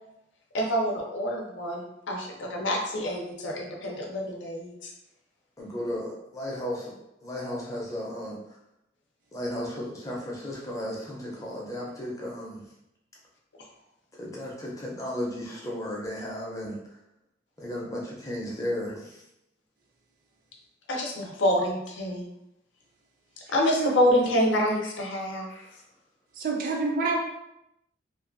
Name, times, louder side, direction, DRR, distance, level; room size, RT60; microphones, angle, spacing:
voice 1, 0.5-4.9 20.9-22.3 23.5-25.7, equal, 85° left, 0 dB, 0.5 m, -27 dB
voice 2, 5.6-7.0 7.2-8.4 9.3-12.6 14.2-16.8 17.6-19.2, left 1 dB, 20° left, -4 dB, 0.6 m, -34 dB
voice 3, 23.4-23.9 26.4-27.2, right 3 dB, 50° right, 1 dB, 0.4 m, -28 dB
2.5 x 2.2 x 2.5 m, 0.84 s
head